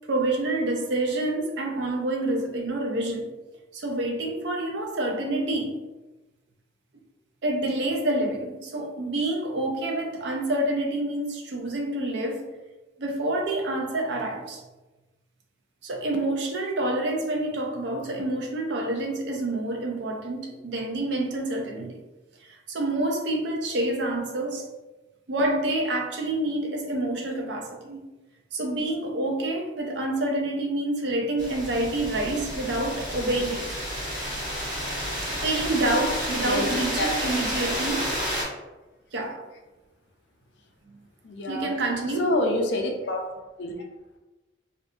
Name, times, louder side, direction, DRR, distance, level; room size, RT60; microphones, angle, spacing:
voice 1, 0.1-3.3 3.7-5.8 7.4-12.4 13.0-14.6 15.8-22.0 22.5-24.6 25.3-28.1 28.5-33.7 35.3-38.1 39.1-39.4 40.9-41.0 41.5-42.3, right 1 dB, 70° right, 1 dB, 0.5 m, -27 dB
sound 1, 31.4-38.4, equal, 45° right, 1.4 m, -31 dB
voice 2, 41.2-41.7 42.2-43.2 43.6-43.7, left 1 dB, 75° left, 2 dB, 0.4 m, -26 dB
2.6 x 2.4 x 2.3 m, 1.1 s
head